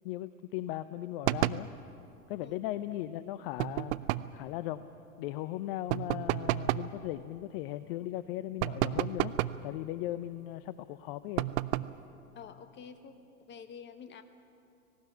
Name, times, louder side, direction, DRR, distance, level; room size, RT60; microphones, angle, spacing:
voice 1, 0.0-1.7 2.3-4.8 5.2-9.4 9.6-11.5, left 14 dB, 40° left, 14 dB, 0.6 m, -38 dB
sound 1, 1.2-1.7 3.6-4.4 5.9-6.9 8.6-9.7 11.4-12.0, right 15 dB, 45° right, 0.6 m, -31 dB
voice 2, 12.3-13.2 13.5-14.2, left 7 dB, 25° left, 9 dB, 1.4 m, -48 dB
18.5 x 17.5 x 9.4 m, 2.6 s
hypercardioid pair, 105°, 44 cm